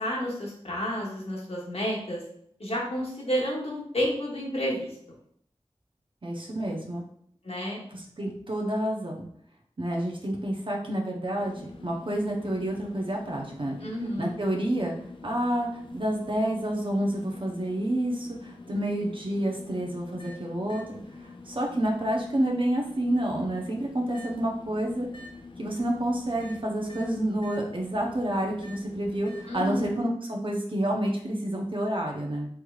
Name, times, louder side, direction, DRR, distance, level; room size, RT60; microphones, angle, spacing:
voice 1, 0.0-2.2 2.6-4.9 7.4-7.8 13.8-14.3 29.5-30.0, equal, 65° left, -4 dB, 1.1 m, -30 dB
voice 2, 6.2-7.1 7.9-9.3 9.8-13.7 14.2-14.9 15.2-25.1 25.6-32.5, right 1 dB, 50° right, 0 dB, 0.8 m, -29 dB
sound 1, 11.4-29.9, left 3 dB, 50° left, 0.5 m, -46 dB
3.4 x 3.1 x 2.3 m, 0.68 s
wide cardioid pair, 50°, 11 cm